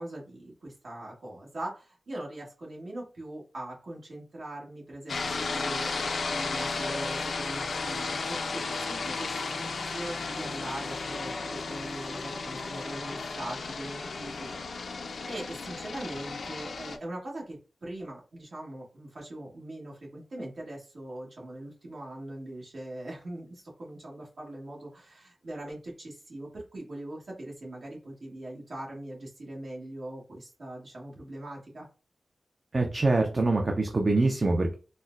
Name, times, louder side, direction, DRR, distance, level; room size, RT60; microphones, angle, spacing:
voice 1, 0.0-31.9, right 1 dB, 70° right, -3 dB, 1.3 m, -41 dB
sound 1, 5.1-17.0, left 4 dB, 85° left, 0.3 m, -34 dB
voice 2, 32.7-34.7, right 2 dB, 45° right, 2 dB, 0.4 m, -24 dB
4.1 x 2.1 x 2.4 m, 0.35 s
wide cardioid pair, 70°, 0 cm